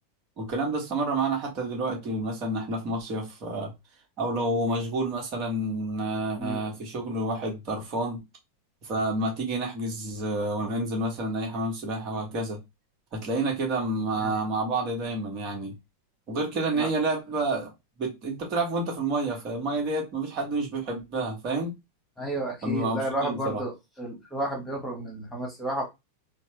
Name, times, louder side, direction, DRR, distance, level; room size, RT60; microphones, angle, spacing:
voice 1, 0.4-3.7 4.2-8.2 8.8-12.6 13.1-15.8 16.3-17.7 18.0-21.7 22.6-23.6, right 2 dB, 35° right, 1.5 m, -29 dB
voice 2, 6.4-6.8 14.2-14.3 16.8-16.9 22.2-25.9, right 1 dB, 5° left, 1.6 m, -32 dB
4.0 x 2.3 x 3.2 m
figure-of-eight pair, 90°, 0 cm